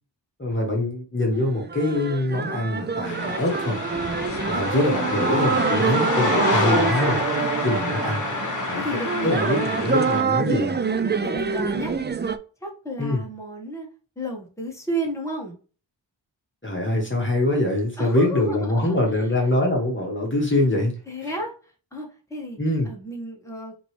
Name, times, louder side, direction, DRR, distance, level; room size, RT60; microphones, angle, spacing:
voice 1, 0.4-3.8 4.5-7.2 7.6-8.2 8.7-8.8 9.2-10.7 13.0-13.2 16.6-21.0 22.6-22.9, left 1 dB, 25° left, 1.4 m, -24 dB
sound 1, 1.3-12.4, right 5 dB, 25° right, 0.4 m, -26 dB
sound 2, 3.0-10.2, left 3 dB, 45° left, 1.3 m, -28 dB
voice 2, 8.7-9.6 10.9-11.9 12.6-13.9 14.1-15.6 18.0-18.9 21.1-22.6 22.8-23.7, right 1 dB, 5° left, 1.6 m, -32 dB
5.0 x 3.1 x 3.3 m
cardioid pair, 45°, 44 cm